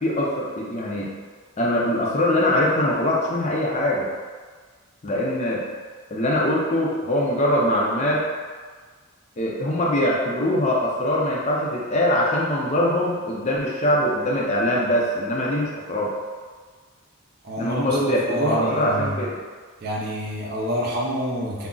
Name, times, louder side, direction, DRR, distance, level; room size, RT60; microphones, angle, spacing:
voice 1, 0.0-1.1 1.6-4.1 5.0-5.6 6.1-8.2 9.4-16.1 17.6-19.3, left 1 dB, 30° left, -3 dB, 0.4 m, -22 dB
voice 2, 17.4-19.2 19.8-21.7, equal, 45° right, -2 dB, 0.4 m, -28 dB
2.3 x 2.0 x 3.7 m, 1.5 s
head